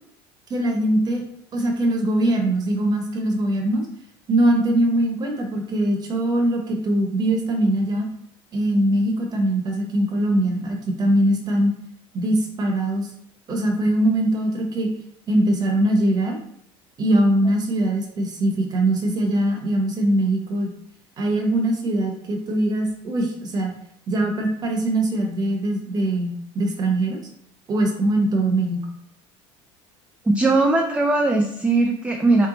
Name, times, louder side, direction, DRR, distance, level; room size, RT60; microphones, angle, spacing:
voice 1, 0.5-1.2 1.5-3.8 4.3-8.1 8.5-11.7 12.1-13.1 13.5-14.9 15.3-16.4 17.0-20.7 21.2-23.7 24.1-27.2 27.7-28.8, right 1 dB, 35° right, 2 dB, 1.1 m, -22 dB
voice 2, 30.2-32.5, right 2 dB, 10° right, 3 dB, 0.4 m, -19 dB
3.1 x 3.1 x 3.9 m, 0.71 s
supercardioid pair, 115°, 12 cm